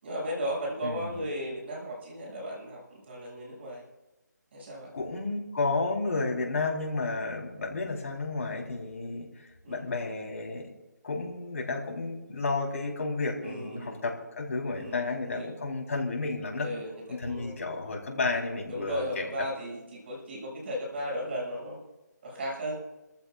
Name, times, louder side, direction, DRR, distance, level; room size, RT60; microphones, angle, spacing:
voice 1, 0.0-3.8 4.5-4.9 9.6-9.8 13.4-14.0 14.8-15.5 16.6-17.6 18.7-21.8 22.2-22.8, equal, 35° right, -2 dB, 6.4 m, -36 dB
voice 2, 0.8-1.2 4.9-10.6 11.0-16.7 17.1-19.3, left 3 dB, 50° left, 0 dB, 3.6 m, -32 dB
26.0 x 14.5 x 2.4 m, 1.0 s
figure-of-eight pair, 160°, 10 cm